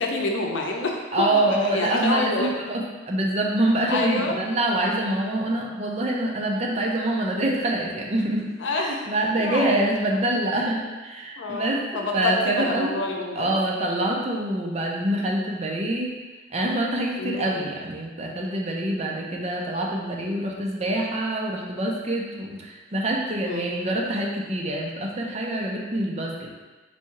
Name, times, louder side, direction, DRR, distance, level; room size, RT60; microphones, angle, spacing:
voice 1, 0.0-2.8 3.9-4.4 8.6-9.0 9.4-9.8 10.1-10.2 11.4-13.5 17.2-17.6 19.0-19.1 23.4-23.8, left 2 dB, 80° left, 1 dB, 0.6 m, -28 dB
voice 2, 1.1-8.5 8.7-13.0 13.4-16.1 16.5-26.5, right 1 dB, 35° right, -1 dB, 0.6 m, -25 dB
4.2 x 2.3 x 4.6 m, 1.3 s
head